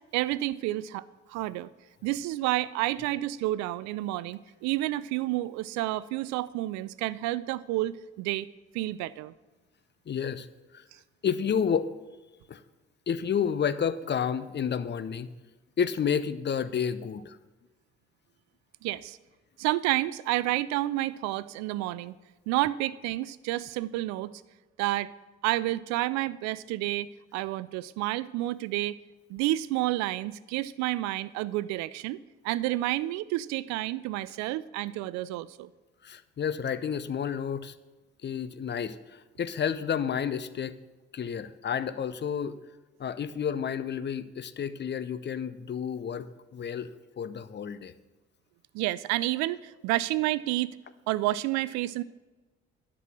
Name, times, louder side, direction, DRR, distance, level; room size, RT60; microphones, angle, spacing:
voice 1, 0.1-1.7 2.0-8.5 8.7-9.3 18.8-19.2 19.6-22.1 22.5-24.3 24.8-25.1 25.4-29.0 29.3-35.7 48.7-50.8 51.1-52.0, right 16 dB, 65° right, 18 dB, 0.4 m, -30 dB
voice 2, 10.1-10.5 10.7-10.8 11.2-11.9 12.5-12.6 13.1-15.3 15.8-17.4 36.0-37.7 38.2-40.8 41.1-42.6 43.0-46.9 47.2-47.9, left 7 dB, 35° left, 14 dB, 0.6 m, -30 dB
11.0 x 6.1 x 6.3 m, 1.2 s
figure-of-eight pair, 40°, 30 cm